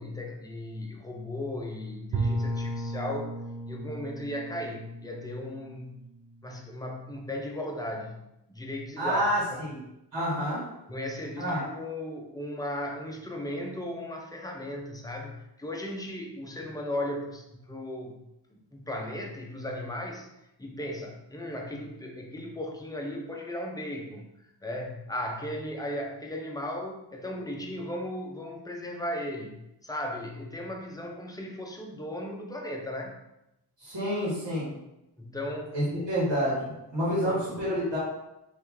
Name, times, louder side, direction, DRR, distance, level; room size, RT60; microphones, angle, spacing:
voice 1, 0.0-3.3 3.7-6.0 6.4-9.2 9.5-9.6 10.9-18.2 18.5-20.3 20.6-33.2 35.2-35.8 37.3-37.4, left 1 dB, 10° left, 1 dB, 0.6 m, -36 dB
Bowed string instrument, 2.1-6.9, right 2 dB, 70° right, 0.5 m, -35 dB
voice 2, 9.0-9.8 10.1-10.7 11.4-11.6 33.8-34.7 35.7-38.0, equal, 85° right, -7 dB, 1.4 m, -28 dB
3.0 x 2.7 x 3.5 m, 0.87 s
wide cardioid pair, 50°, 42 cm